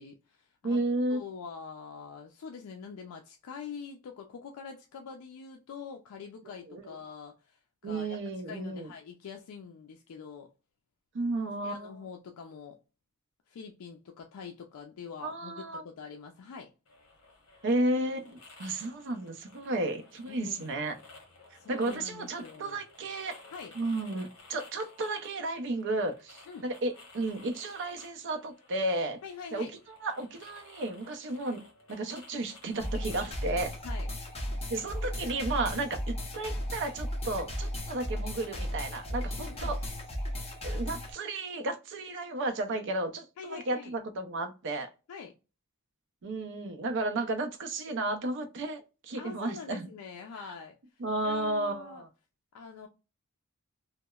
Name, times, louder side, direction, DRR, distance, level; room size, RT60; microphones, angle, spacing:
voice 1, 0.0-0.8 1.1-8.2 8.5-10.5 11.4-12.8 13.5-16.7 20.3-20.7 21.5-22.8 23.5-23.7 26.5-26.7 29.2-29.7 33.8-34.1 39.4-39.7 43.4-44.0 45.1-45.3 49.1-50.7 51.2-52.0 52.5-52.9, left 6 dB, 80° left, 0.4 m, -45 dB
voice 2, 0.6-1.2 6.7-6.9 7.8-8.9 11.1-12.0 15.2-15.8 17.6-20.9 21.7-23.4 23.8-29.2 29.5-31.6 31.9-33.7 34.7-39.8 40.6-44.9 46.2-49.9 51.0-52.1, right 2 dB, 60° right, 0.5 m, -33 dB
sound 1, 16.9-34.4, left 3 dB, 65° left, 0.9 m, -55 dB
sound 2, 32.8-41.1, equal, 30° left, 0.6 m, -35 dB
2.9 x 2.0 x 2.2 m
head